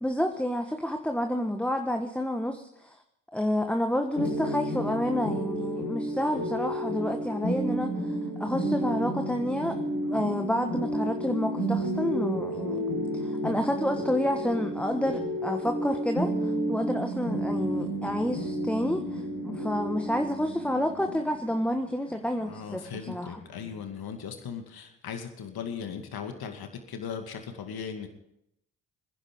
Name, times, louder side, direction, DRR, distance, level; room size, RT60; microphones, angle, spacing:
voice 1, 0.0-3.0 3.3-12.9 13.1-23.4, left 1 dB, 5° left, 4 dB, 1.4 m, -29 dB
sound 1, 4.1-23.7, equal, 85° left, 6.6 m, -31 dB
voice 2, 22.4-28.1, left 7 dB, 55° left, 5 dB, 2.3 m, -38 dB
22.0 x 10.5 x 5.3 m, 0.83 s
hypercardioid pair, 45°, 43 cm